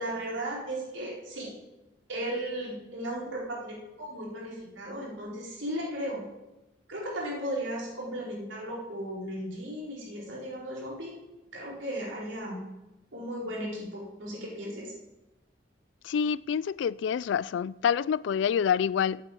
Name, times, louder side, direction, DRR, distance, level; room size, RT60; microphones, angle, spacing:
voice 1, 0.0-1.5 2.1-6.3 6.9-11.2 11.5-12.6 13.1-14.9, right 1 dB, 85° right, 4.2 m, -36 dB
voice 2, 16.0-19.2, left 7 dB, 75° left, 0.3 m, -27 dB
8.3 x 8.3 x 8.5 m
head